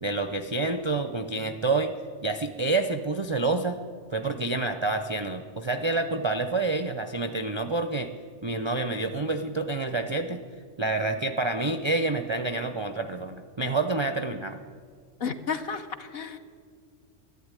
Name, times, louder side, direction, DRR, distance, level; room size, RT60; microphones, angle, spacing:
voice 1, 0.0-1.9 2.2-3.8 4.1-8.1 8.4-10.4 10.8-14.6, right 3 dB, 40° right, 7 dB, 0.4 m, -28 dB
voice 2, 15.2-16.4, left 6 dB, 55° left, 7 dB, 1.0 m, -32 dB
12.0 x 11.5 x 9.6 m, 2.1 s
omnidirectional pair, 1.3 m